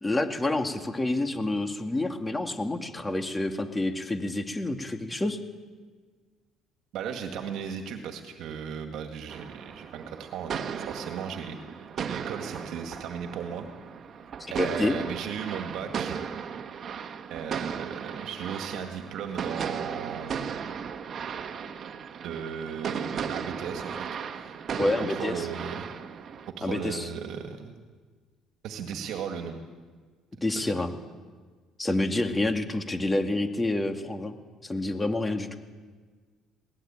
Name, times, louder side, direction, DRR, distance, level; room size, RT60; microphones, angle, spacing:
voice 1, 0.0-5.4 14.4-15.0 24.8-25.5 26.6-27.1 30.4-30.9 31.8-34.4 34.6-35.5, left 2 dB, 15° left, 6 dB, 2.2 m, -28 dB
voice 2, 6.9-13.7 14.5-16.3 17.3-20.6 22.2-24.5 24.8-25.9 26.5-27.8 28.6-29.6 30.7-30.9, right 7 dB, 70° right, 5 dB, 1.9 m, -36 dB
sound 1, 9.3-26.5, right 7 dB, 50° right, 1.4 m, -36 dB
21.5 x 18.5 x 8.9 m, 1.5 s
cardioid pair, 95°, 0 cm